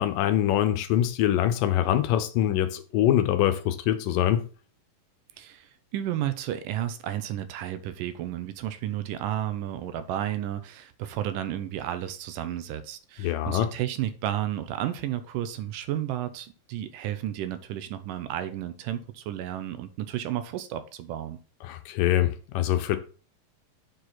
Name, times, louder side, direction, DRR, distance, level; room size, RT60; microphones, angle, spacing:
voice 1, 0.0-4.4 13.2-13.7 21.6-23.0, left 12 dB, 80° left, 2.3 m, -24 dB
voice 2, 5.4-21.4, right 12 dB, 80° right, 2.3 m, -32 dB
6.6 x 4.8 x 5.8 m
omnidirectional pair, 4.0 m